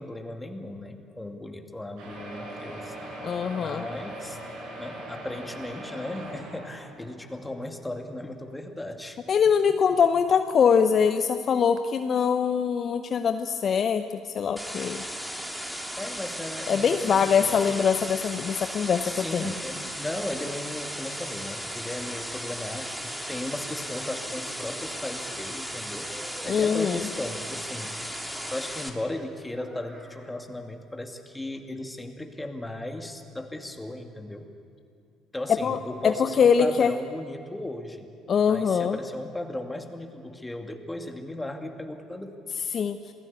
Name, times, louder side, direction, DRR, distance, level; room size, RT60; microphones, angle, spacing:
voice 1, 0.0-3.0 3.5-4.4 4.8-9.2 16.0-17.8 19.0-26.1 26.4-28.0 28.5-34.5 35.3-38.1 38.5-42.4, left 1 dB, 10° left, 5 dB, 2.5 m, -36 dB
sound 1, 2.0-7.4 8.1-8.2 8.4-8.5 8.9-9.0, right 1 dB, 60° right, 7.7 m, -40 dB
voice 2, 3.2-3.8 9.3-15.0 16.7-19.5 26.5-27.1 35.5-35.8 36.0-36.9 38.3-39.0 42.7-43.0, left 6 dB, 45° left, 10 dB, 0.8 m, -23 dB
sound 2, 14.6-28.9, equal, 5° right, 2.8 m, -36 dB
Child speech kid speaking, 18.4-20.4 21.3-22.6 23.7-24.9 25.2-27.0 29.5-30.4, equal, 30° right, 5.0 m, -50 dB
27.0 x 18.0 x 8.4 m, 2.5 s
figure-of-eight pair, 50°, 0 cm